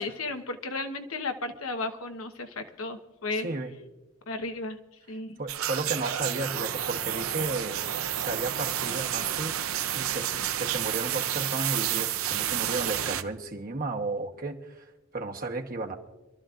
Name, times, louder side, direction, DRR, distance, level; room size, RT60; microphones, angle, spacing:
voice 1, 0.0-3.5 4.3-4.8 5.1-5.4, left 3 dB, 85° left, 6 dB, 1.1 m, -34 dB
voice 2, 3.3-3.7 5.4-7.8 8.2-9.6 9.9-14.8 15.1-16.0, right 2 dB, 45° right, 3 dB, 1.1 m, -33 dB
sound 1, 5.5-13.2, right 11 dB, 85° right, 0.6 m, -30 dB
26.5 x 13.0 x 2.5 m, 1.1 s
head